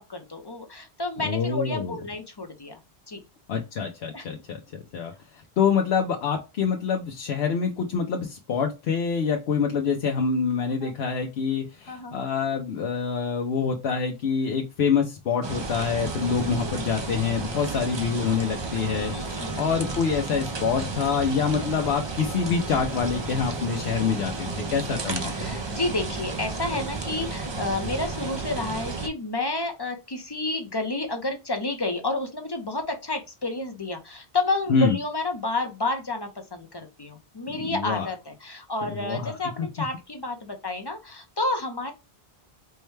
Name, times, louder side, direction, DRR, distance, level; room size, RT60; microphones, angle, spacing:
voice 1, 0.0-2.8 3.1-3.2 4.1-4.3 10.8-10.9 11.9-12.2 16.2-16.4 19.1-19.6 24.5-24.6 25.3-41.9, left 2 dB, 30° left, 4 dB, 0.5 m, -30 dB
voice 2, 1.2-2.0 3.5-25.5 34.7-35.0 37.5-38.1 38.8-39.7, left 6 dB, 80° left, 2 dB, 0.9 m, -26 dB
sound 1, 15.4-29.1, right 3 dB, 40° right, 0.4 m, -32 dB
4.5 x 2.2 x 3.1 m, 0.27 s
omnidirectional pair, 1.0 m